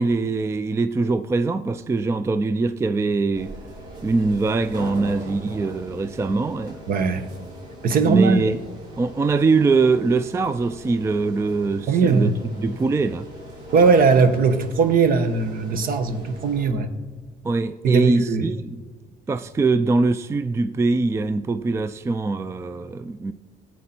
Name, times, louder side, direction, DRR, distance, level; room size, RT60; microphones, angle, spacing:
voice 1, 0.0-3.5 4.0-6.8 8.1-8.6 9.0-13.3 17.4-18.8 19.3-23.3, right 3 dB, 15° right, 0.3 m, -22 dB
sound 1, 3.3-16.7, equal, 90° right, 3.9 m, -40 dB
voice 2, 6.9-7.2 7.8-8.4 11.9-12.3 13.7-16.9 17.8-18.5, right 4 dB, 60° right, 1.1 m, -19 dB
17.5 x 8.2 x 4.4 m
cardioid pair, 110°, 17 cm